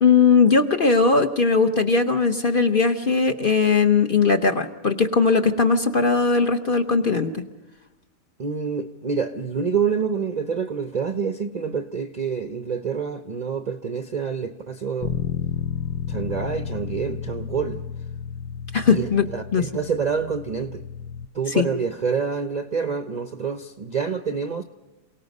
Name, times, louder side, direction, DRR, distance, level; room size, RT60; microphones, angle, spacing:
voice 1, 0.0-7.4 18.7-19.3 19.5-19.6 21.5-21.7, left 4 dB, 40° left, 0.9 m, -19 dB
voice 2, 8.4-15.2 16.1-17.8 18.9-20.8 21.3-24.6, right 6 dB, 45° right, 0.5 m, -27 dB
Bass guitar, 15.0-21.3, left 8 dB, 80° left, 1.5 m, -32 dB
27.5 x 18.0 x 5.4 m
omnidirectional pair, 1.7 m